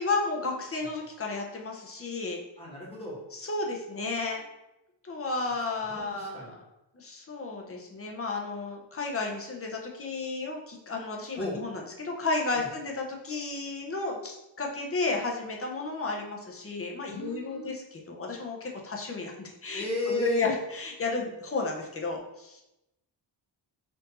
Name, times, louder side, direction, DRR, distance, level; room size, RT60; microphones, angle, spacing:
voice 1, 0.0-2.4 3.3-4.4 5.0-6.6 6.9-22.6, left 3 dB, 30° left, 0 dB, 0.6 m, -32 dB
voice 2, 2.6-3.2 5.9-6.5 11.3-11.6 12.5-12.7 17.1-17.7 19.7-20.5, left 2 dB, 15° left, -5 dB, 1.2 m, -34 dB
4.5 x 2.6 x 4.1 m, 0.92 s
wide cardioid pair, 170°, 44 cm